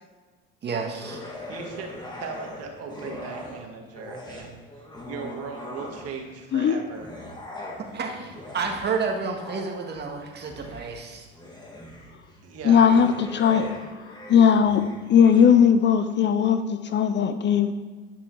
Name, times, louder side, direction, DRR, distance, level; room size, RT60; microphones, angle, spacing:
voice 1, 0.6-1.2 7.9-11.3, right 4 dB, 35° right, 1 dB, 1.7 m, -30 dB
sound 1, 1.0-3.7 3.9-6.3 6.8-15.5, left 1 dB, 15° left, 1.9 m, -41 dB
voice 2, 1.5-4.6 5.1-7.1 12.4-13.0, right 5 dB, 55° right, 3 dB, 1.6 m, -38 dB
voice 3, 12.6-13.7 14.3-14.8 15.1-17.7, left 7 dB, 40° left, 10 dB, 0.6 m, -18 dB
10.5 x 5.8 x 3.9 m, 1.4 s
supercardioid pair, 95°, 29 cm